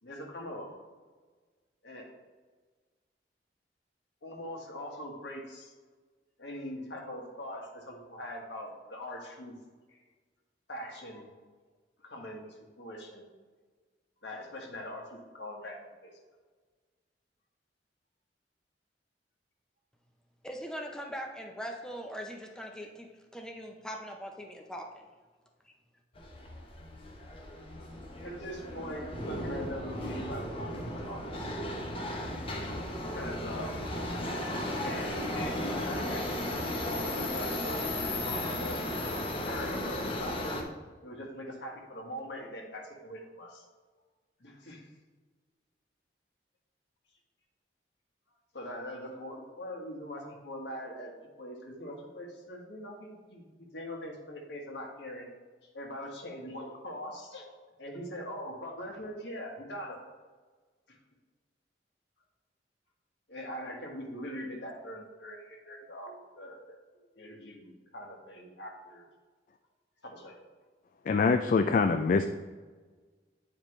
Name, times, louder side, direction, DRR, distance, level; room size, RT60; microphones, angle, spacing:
voice 1, 0.0-0.7 1.8-2.1 4.2-5.7 6.4-9.5 9.9-10.0 10.7-11.3 12.0-12.5 12.8-13.3 14.2-15.8 16.0-16.1 27.7-30.7 31.0-31.2 33.1-33.9 34.8-36.2 36.6-38.9 39.4-40.7 41.0-43.6 44.4-44.9 48.5-51.1 51.4-55.3 55.7-57.5 57.8-60.0 60.9-61.0 63.3-66.8 67.1-69.0 70.0-70.4, left 1 dB, 75° left, 0 dB, 1.6 m, -42 dB
voice 2, 20.4-25.1, equal, 5° left, 2 dB, 0.6 m, -41 dB
Subway metro underground, 26.1-40.6, left 1 dB, 30° left, 1.0 m, -35 dB
voice 3, 71.1-72.3, left 4 dB, 50° left, 7 dB, 0.3 m, -24 dB
8.9 x 5.1 x 3.2 m, 1.4 s
head